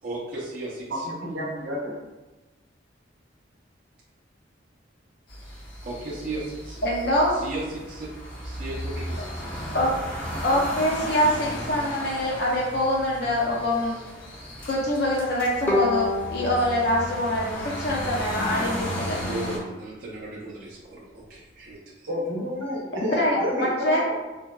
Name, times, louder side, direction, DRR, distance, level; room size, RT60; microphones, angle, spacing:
voice 1, 0.0-1.1 5.5-6.8 7.3-9.7 19.2-21.8, right 2 dB, 45° right, -7 dB, 0.4 m, -36 dB
voice 2, 0.9-2.0 22.1-24.1, equal, 85° right, -3 dB, 0.6 m, -29 dB
sound 1, 5.3-19.6, equal, 80° left, 0.9 m, -35 dB
voice 3, 6.8-7.4 9.7-9.9 10.4-13.9 14.6-19.2 23.1-24.0, left 1 dB, 60° left, -4 dB, 0.5 m, -24 dB
Bowed string instrument, 15.7-18.7, left 3 dB, 10° left, 0.5 m, -29 dB
2.6 x 2.1 x 2.2 m, 1.1 s
head